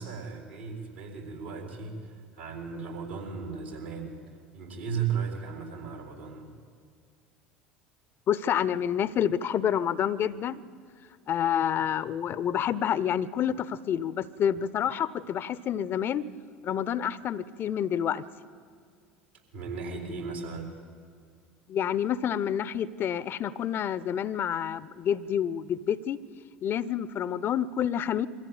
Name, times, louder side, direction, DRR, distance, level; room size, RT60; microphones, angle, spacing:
voice 1, 0.0-4.2 4.5-6.5 19.5-20.7, right 6 dB, 80° right, 1 dB, 3.9 m, -36 dB
voice 2, 8.3-10.6 11.3-16.3 16.6-18.2 21.7-26.2 26.6-28.3, left 9 dB, 40° left, 19 dB, 0.6 m, -28 dB
23.0 x 15.0 x 8.6 m, 2.1 s
figure-of-eight pair, 70°, 6 cm